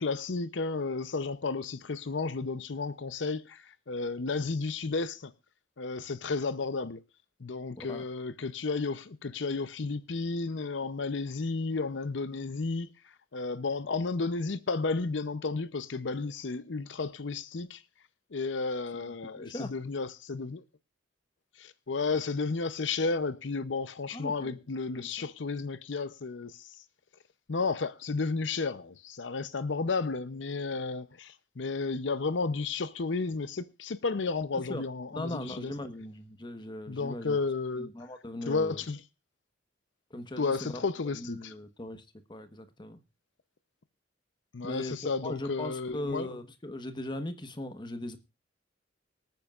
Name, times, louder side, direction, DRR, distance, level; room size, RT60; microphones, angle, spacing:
voice 1, 0.0-5.3 5.8-7.0 7.4-12.9 13.3-17.8 18.3-20.6 21.6-26.8 27.5-35.7 36.9-37.9 38.5-39.0 40.4-41.5 44.5-46.3, left 4 dB, 75° left, 0.7 m, -32 dB
voice 2, 19.0-19.7 24.1-24.6 24.9-25.3 34.5-34.8 35.1-37.4 37.8-38.8 40.1-40.8 41.1-43.0 44.6-44.9 45.2-48.2, left 1 dB, 25° left, 1.2 m, -39 dB
24.5 x 9.2 x 2.4 m
head